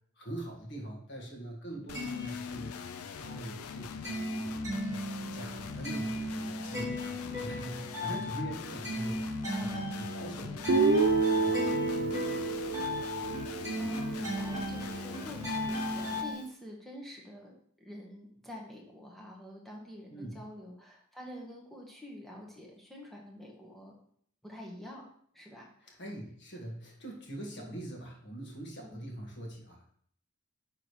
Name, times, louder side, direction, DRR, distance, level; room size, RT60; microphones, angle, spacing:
voice 1, 0.2-4.6 4.9-11.0 11.3-13.0 20.1-20.4 25.8-29.9, right 1 dB, 50° left, 0 dB, 1.8 m, -43 dB
sound 1, 1.8-3.2 3.5-16.3, left 1 dB, 15° right, 2.7 m, -36 dB
sound 2, 1.9-16.2, left 6 dB, 75° left, 0.4 m, -43 dB
voice 2, 9.5-9.9 13.8-23.9 24.4-25.0 25.3-26.0 27.6-27.8 28.8-29.0, left 1 dB, ahead, -2 dB, 1.3 m, -47 dB
Guitar, 10.7-14.6, right 4 dB, 50° right, 0.4 m, -29 dB
9.6 x 3.8 x 3.2 m, 0.62 s
head